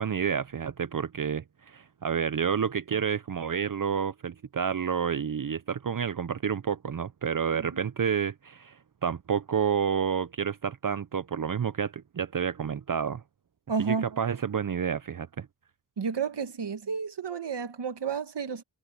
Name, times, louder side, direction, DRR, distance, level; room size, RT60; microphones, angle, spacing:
voice 1, 0.0-13.2 13.8-15.5, right 7 dB, 50° right, 0.7 m, -29 dB
voice 2, 13.7-14.1 16.0-18.6, right 5 dB, 70° right, 1.6 m, -31 dB
cardioid pair, 45°, 43 cm